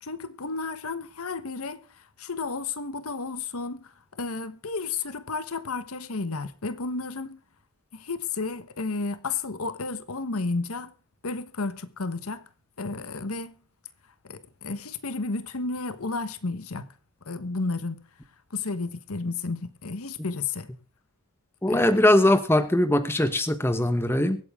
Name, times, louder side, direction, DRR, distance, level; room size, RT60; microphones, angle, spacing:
voice 1, 0.0-7.4 7.9-10.9 11.2-12.4 12.8-13.5 14.2-16.9 17.3-18.0 18.5-20.7 21.7-21.9, left 3 dB, 85° left, 1.1 m, -32 dB
voice 2, 21.6-24.4, left 1 dB, 10° left, 1.0 m, -21 dB
23.5 x 8.6 x 3.6 m
head